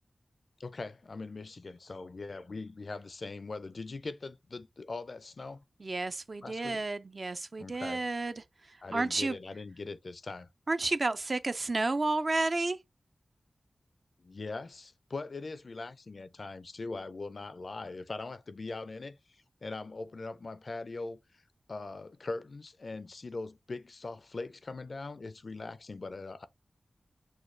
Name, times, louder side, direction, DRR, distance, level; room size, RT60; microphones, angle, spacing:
voice 1, 0.6-5.6 6.4-6.9 7.6-8.1 8.8-10.5 14.2-19.2 19.6-21.4 21.7-26.5, left 3 dB, 55° left, 0.4 m, -41 dB
voice 2, 5.8-8.3 8.9-9.4 10.7-12.8, right 2 dB, 45° right, 0.4 m, -31 dB
6.3 x 2.2 x 3.2 m
wide cardioid pair, 100°, 0 cm